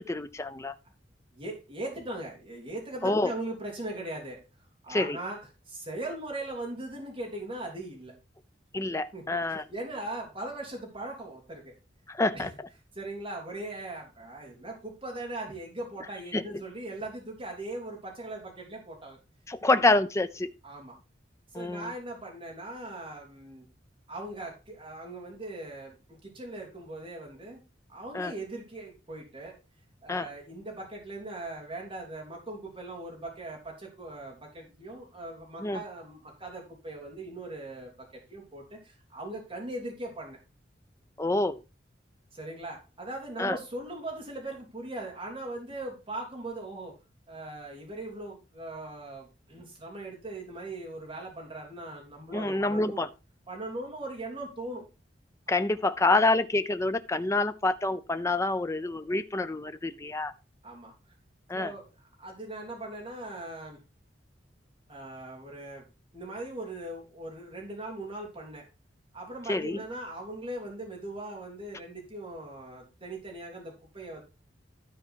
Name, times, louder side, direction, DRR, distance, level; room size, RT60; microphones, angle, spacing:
voice 1, 0.1-0.7 3.0-3.3 4.9-5.2 8.7-9.6 12.1-12.5 16.3-16.6 19.5-20.5 21.5-21.9 28.1-28.3 30.1-30.3 35.6-35.8 41.2-41.6 43.4-43.6 52.3-53.1 55.5-60.3 61.5-61.7 69.5-69.8, left 2 dB, 15° left, 0.5 m, -27 dB
voice 2, 1.3-4.4 4.8-5.4 5.7-8.1 9.1-9.2 9.5-11.7 12.3-12.5 12.9-19.2 20.6-20.9 21.5-23.6 24.1-26.0 26.2-27.6 27.9-29.5 30.0-37.9 38.3-40.4 42.3-47.0 47.3-53.0 53.5-54.8 60.6-60.9 61.5-61.9 62.2-63.8 64.9-65.8 66.1-68.6 69.1-74.2, right 2 dB, 30° right, 3.4 m, -39 dB
12.5 x 4.7 x 4.5 m
head